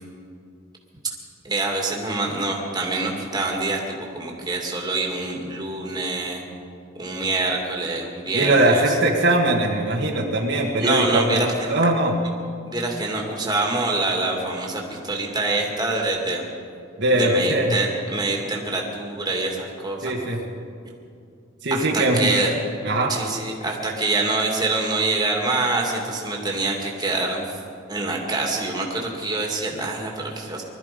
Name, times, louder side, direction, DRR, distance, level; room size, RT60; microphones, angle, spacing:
voice 1, 1.4-3.8 4.1-6.4 7.0-9.0 10.8-11.8 12.6-16.4 17.2-20.1 20.9-21.0 21.7-22.5 23.1-27.5 27.9-30.6, right 2 dB, 20° right, -1 dB, 2.2 m, -25 dB
voice 2, 8.3-11.4 11.7-12.1 17.0-17.8 20.0-20.4 21.6-22.3 22.8-23.1, right 1 dB, 60° right, -1 dB, 1.6 m, -20 dB
21.0 x 13.0 x 5.2 m, 2.4 s
head